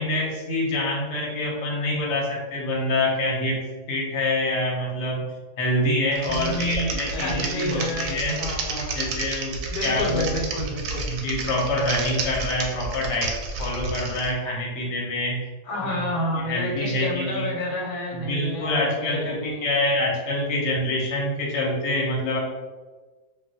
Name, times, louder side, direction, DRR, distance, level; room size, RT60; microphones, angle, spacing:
voice 1, 0.0-8.4 8.9-10.3 10.6-13.3 13.6-15.4 15.8-15.9 16.4-17.5 18.1-22.4, left 1 dB, 55° left, -2 dB, 0.9 m, -26 dB
Typing, 6.1-14.3, right 3 dB, 70° right, 0.9 m, -31 dB
voice 2, 6.3-9.0 9.7-11.1 15.7-19.8, left 1 dB, 80° left, -1 dB, 1.1 m, -29 dB
2.5 x 2.3 x 3.9 m, 1.3 s
omnidirectional pair, 1.6 m